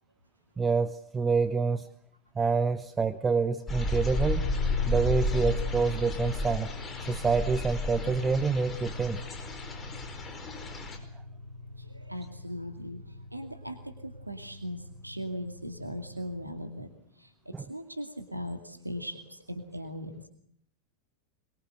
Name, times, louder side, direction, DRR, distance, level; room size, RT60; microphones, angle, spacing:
voice 1, 0.6-1.9 2.3-4.5 4.9-6.7 7.0-9.2 17.5-17.7, right 5 dB, 15° right, 14 dB, 0.9 m, -27 dB
sound 1, 3.7-11.0, left 2 dB, 20° left, 4.7 m, -32 dB
sound 2, 4.1-16.5, left 3 dB, 90° left, 6.7 m, -41 dB
voice 2, 12.1-13.0 13.3-13.8 14.3-16.9 17.7-19.2 19.5-20.2, equal, 85° right, 7 dB, 2.4 m, -38 dB
23.0 x 22.5 x 8.0 m, 0.68 s
figure-of-eight pair, 90°, 0 cm